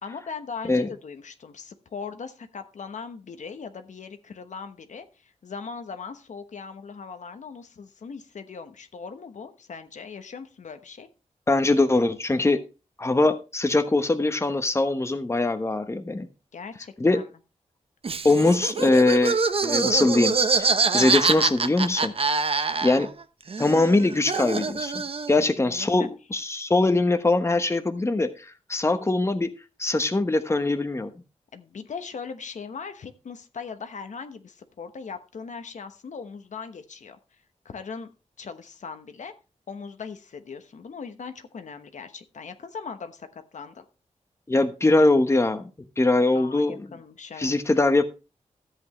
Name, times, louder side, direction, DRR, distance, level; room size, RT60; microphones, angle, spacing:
voice 1, 0.0-11.1 16.5-17.2 25.7-26.1 31.5-37.2 37.6-38.1 38.4-39.3 39.7-43.8 46.3-47.6, left 5 dB, 75° left, 8 dB, 1.1 m, -39 dB
voice 2, 11.5-12.6 13.0-16.3 17.0-17.2 18.2-20.7 20.9-22.1 22.8-23.1 23.6-25.0 25.3-29.5 29.8-31.1 44.5-45.7 46.0-46.9 47.4-48.0, left 2 dB, 20° left, 9 dB, 1.1 m, -22 dB
Laughter, 18.0-23.2 23.5-25.4, right 4 dB, 50° right, 1.0 m, -25 dB
13.5 x 8.0 x 3.2 m, 0.30 s
wide cardioid pair, 95°, 13 cm